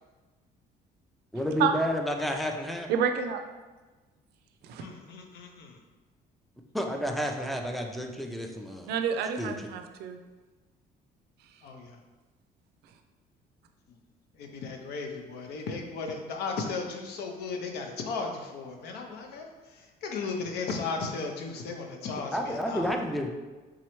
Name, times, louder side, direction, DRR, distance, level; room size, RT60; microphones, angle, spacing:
voice 1, 1.3-2.9 6.7-8.9 9.4-9.7 22.3-23.3, equal, ahead, 3 dB, 0.4 m, -30 dB
voice 2, 2.9-3.4 4.6-4.8 8.9-10.2, right 7 dB, 75° right, 6 dB, 0.4 m, -28 dB
voice 3, 4.8-5.8 11.6-12.0 13.9-14.0 14.3-22.9, left 4 dB, 80° left, 2 dB, 0.6 m, -36 dB
3.7 x 3.1 x 3.0 m, 1.2 s
cardioid pair, 110°, 17 cm